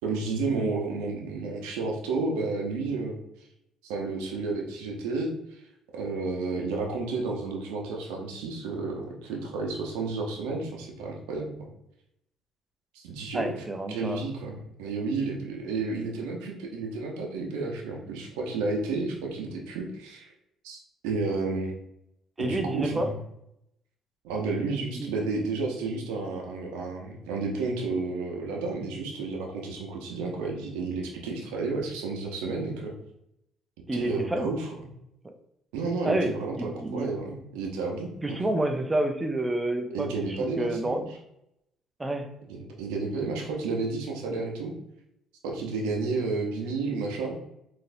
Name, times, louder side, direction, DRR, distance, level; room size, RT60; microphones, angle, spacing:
voice 1, 0.0-3.2 3.8-5.3 5.9-11.5 12.9-13.5 13.9-20.3 20.6-21.7 22.4-23.1 24.2-32.9 33.9-34.9 35.7-38.4 39.9-41.0 42.5-44.7 45.4-47.4, right 3 dB, 85° right, 0 dB, 0.7 m, -31 dB
voice 2, 13.3-14.3 22.4-23.1 25.0-25.1 33.9-34.5 35.2-35.3 36.0-37.1 38.2-41.1 42.0-42.3, right 1 dB, 20° right, 6 dB, 0.5 m, -29 dB
4.0 x 2.6 x 2.6 m, 0.80 s
hypercardioid pair, 60°, 0 cm